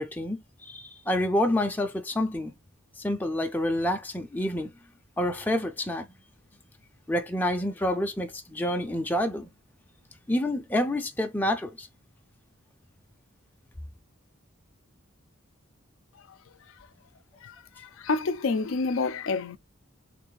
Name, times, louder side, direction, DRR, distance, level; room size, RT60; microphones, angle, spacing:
voice 1, 0.0-2.5 3.0-4.7 5.2-6.1 7.1-9.5 10.3-11.9, left 1 dB, 10° left, 0.5 m, -28 dB
voice 2, 17.4-19.6, left 4 dB, 70° left, 0.4 m, -29 dB
3.3 x 2.5 x 3.8 m
head